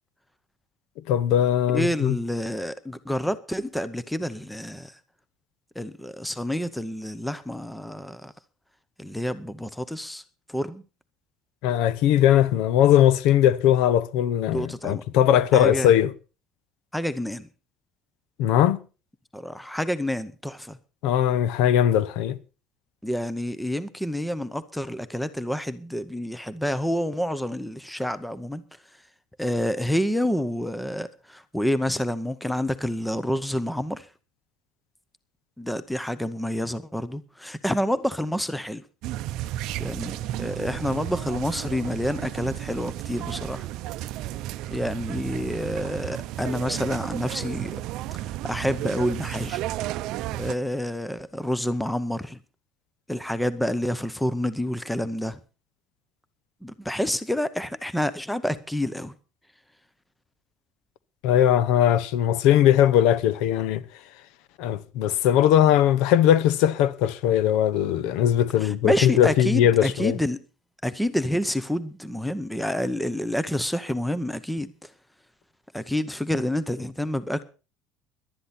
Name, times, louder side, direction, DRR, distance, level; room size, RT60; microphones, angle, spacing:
voice 1, 1.1-2.1 11.6-16.1 18.4-18.8 21.0-22.4 61.2-63.8 64.6-70.2, left 11 dB, 70° left, 0.9 m, -20 dB
voice 2, 1.7-4.9 5.8-8.3 9.0-10.2 10.5-10.8 14.5-15.0 15.5-15.9 16.9-17.5 19.3-20.8 23.0-28.6 29.4-34.1 35.6-38.8 39.8-43.7 44.7-47.8 48.4-49.6 50.4-52.4 53.1-55.4 56.6-59.1 68.6-70.4 70.8-74.9 75.7-77.4, equal, ahead, 0.7 m, -28 dB
sound 1, 39.0-50.5, right 14 dB, 55° right, 0.6 m, -33 dB
18.5 x 12.0 x 4.2 m
cardioid pair, 180°, 0 cm